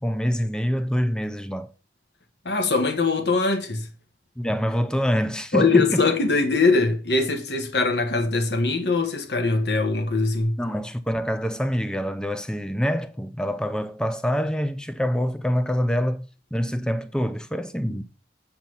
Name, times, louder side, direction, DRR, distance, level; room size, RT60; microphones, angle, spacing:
voice 1, 0.0-1.7 4.4-6.0 10.6-18.0, equal, 5° left, 0.5 m, -25 dB
voice 2, 2.4-3.9 5.5-10.6 17.8-18.0, left 3 dB, 75° left, 1.5 m, -22 dB
8.1 x 4.3 x 5.7 m
head